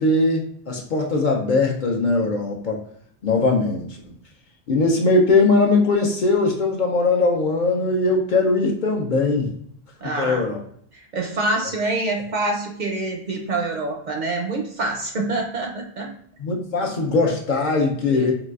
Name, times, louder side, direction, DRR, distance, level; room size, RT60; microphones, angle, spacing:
voice 1, 0.0-2.8 3.2-4.0 4.7-9.5 10.2-10.6 16.4-18.3, left 3 dB, 55° left, 0 dB, 0.6 m, -20 dB
voice 2, 10.0-10.4 10.9-16.1 18.1-18.3, right 2 dB, 55° right, 1 dB, 0.5 m, -26 dB
3.9 x 2.2 x 2.3 m, 0.64 s
omnidirectional pair, 1.1 m